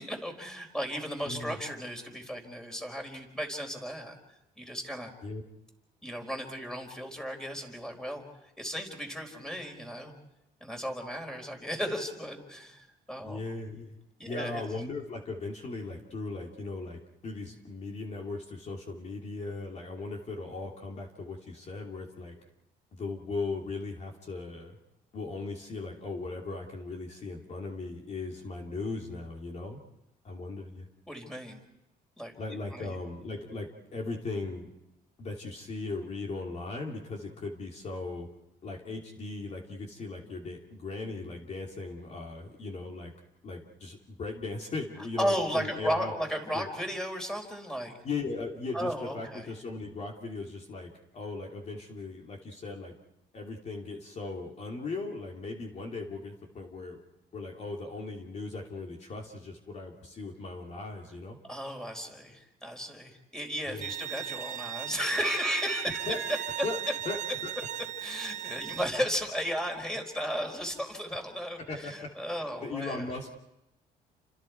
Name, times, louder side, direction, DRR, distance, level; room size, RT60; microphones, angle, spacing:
voice 1, 0.0-4.2 4.6-5.1 6.0-10.1 10.6-13.4 14.2-14.6 31.1-31.6 32.2-33.0 45.0-48.0 48.7-49.5 61.5-66.5 68.0-73.3, equal, 5° left, 4 dB, 4.5 m, -35 dB
voice 2, 1.2-1.6 5.2-5.4 13.2-14.0 14.2-22.4 22.9-24.8 25.1-29.8 30.2-30.9 32.4-34.7 35.2-38.3 38.6-43.1 43.4-46.1 46.5-46.7 48.0-52.9 53.3-57.0 57.3-61.4 63.6-63.9 66.1-66.2 66.6-66.8 67.0-67.2 67.4-67.5 71.7-72.1 72.4-73.3, left 3 dB, 40° left, 0 dB, 2.9 m, -38 dB
Bowed string instrument, 63.8-68.8, right 11 dB, 45° right, 0.9 m, -37 dB
30.0 x 26.0 x 4.7 m, 0.91 s
cardioid pair, 110°, 17 cm